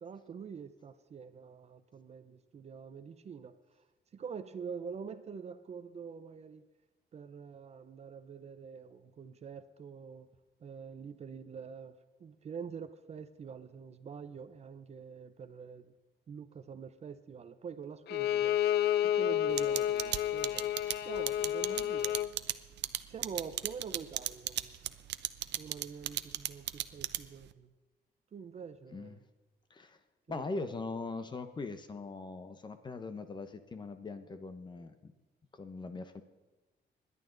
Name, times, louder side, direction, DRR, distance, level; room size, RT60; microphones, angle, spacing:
voice 1, 0.0-3.5 4.1-6.6 7.1-10.3 10.6-15.9 16.3-18.6 19.0-20.7 21.0-22.2 23.1-24.8 25.6-27.7 28.3-29.2 30.3-30.7, right 6 dB, 40° right, 11 dB, 0.6 m, -45 dB
Bowed string instrument, 18.1-22.3, left 11 dB, 70° left, 0.4 m, -30 dB
sound 1, 19.6-27.5, right 13 dB, 80° right, 0.6 m, -34 dB
voice 2, 30.3-35.1 35.5-36.2, left 3 dB, 25° left, 9 dB, 0.8 m, -41 dB
26.5 x 11.0 x 3.9 m, 1.2 s
wide cardioid pair, 175°, 18 cm